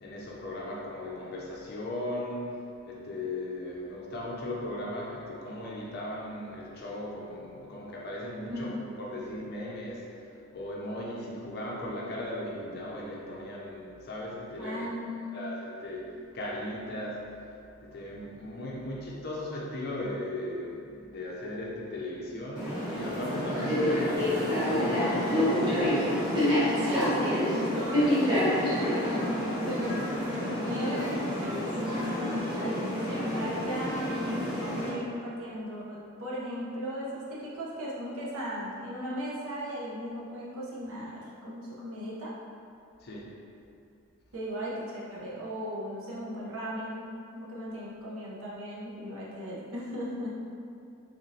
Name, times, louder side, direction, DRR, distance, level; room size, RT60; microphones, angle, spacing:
voice 1, 0.0-8.7 9.0-14.9 15.3-17.5 17.8-26.0 43.0-43.5, left 1 dB, 45° left, -4 dB, 0.4 m, -37 dB
voice 2, 8.5-8.8 14.6-15.5 26.7-34.2 34.7-42.3 44.3-50.4, equal, 80° right, -6 dB, 0.8 m, -37 dB
sound 1, 22.6-34.9, left 1 dB, 20° right, 0.9 m, -28 dB
3.5 x 2.9 x 2.7 m, 2.6 s
head